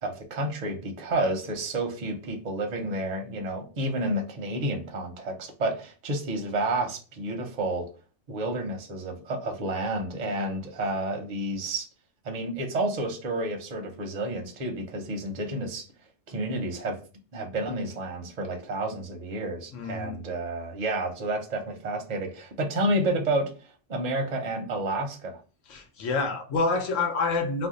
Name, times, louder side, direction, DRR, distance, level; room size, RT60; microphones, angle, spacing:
voice 1, 0.0-7.9 8.3-11.9 12.2-15.9 16.3-17.0 17.3-25.4, right 1 dB, 45° right, 3 dB, 0.6 m, -30 dB
voice 2, 19.7-20.2 22.9-23.0 25.7-27.7, left 3 dB, 85° left, 4 dB, 1.0 m, -28 dB
2.6 x 2.0 x 3.7 m, 0.35 s
omnidirectional pair, 1.3 m